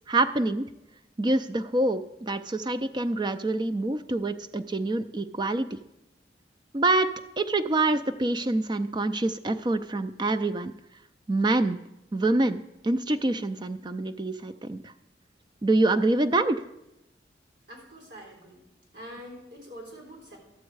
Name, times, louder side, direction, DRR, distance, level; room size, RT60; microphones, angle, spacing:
voice 1, 0.1-0.7 1.2-5.8 6.7-10.7 11.3-11.8 12.1-14.9 15.6-16.6, right 2 dB, 25° right, 10 dB, 0.4 m, -26 dB
voice 2, 17.7-18.6 18.9-20.4, equal, 75° right, -2 dB, 3.6 m, -45 dB
12.0 x 7.3 x 4.7 m, 0.91 s
head